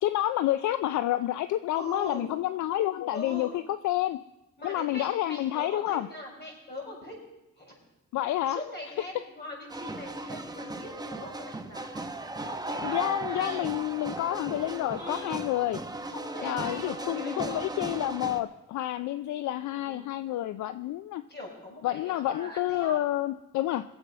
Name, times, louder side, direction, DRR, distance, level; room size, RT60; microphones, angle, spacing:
voice 1, 0.0-4.2 4.6-6.1 8.1-8.6 12.8-15.8 16.4-21.2 21.8-23.8, left 14 dB, 70° left, 13 dB, 0.5 m, -29 dB
voice 2, 1.7-2.3 3.1-3.5 4.6-7.2 7.6-7.7 8.5-12.1 12.4-13.7 14.9-15.3 16.1-17.6 19.6-20.1 21.3-23.0, left 1 dB, 35° left, -2 dB, 6.3 m, -41 dB
sound 1, 9.7-18.4, right 2 dB, 15° right, 1.0 m, -37 dB
20.5 x 7.8 x 5.5 m, 0.95 s
cardioid pair, 90°, 30 cm